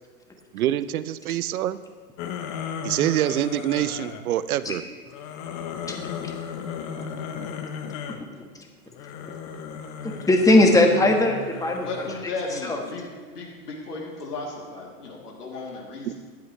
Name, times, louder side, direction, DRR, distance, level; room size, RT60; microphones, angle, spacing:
voice 1, 0.5-1.8 2.8-4.8 16.1-16.2, right 12 dB, 65° right, 16 dB, 0.7 m, -25 dB
sound 1, 2.2-4.2 5.0-8.2 8.9-12.4, left 7 dB, 35° left, 1.1 m, -35 dB
voice 2, 10.0-12.0 12.5-12.8, left 1 dB, 5° left, 2 dB, 1.5 m, -20 dB
voice 3, 11.8-13.0 13.3-16.1, left 3 dB, 80° left, -2 dB, 3.2 m, -35 dB
14.5 x 11.5 x 3.3 m, 1.5 s
hypercardioid pair, 105°, 46 cm